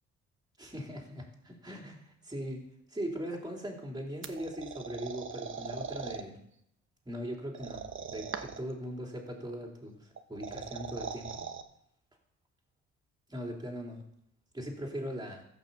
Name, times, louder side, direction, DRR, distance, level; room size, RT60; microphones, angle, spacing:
voice 1, 0.6-2.6 2.9-6.4 7.1-7.8 8.1-11.4 13.3-14.0 14.5-15.4, equal, 15° right, 0 dB, 3.6 m, -40 dB
sound 1, 4.2-6.2 7.5-8.7 10.2-11.6, right 6 dB, 40° right, 1.1 m, -40 dB
15.0 x 6.1 x 7.1 m, 0.75 s
cardioid pair, 90°, 30 cm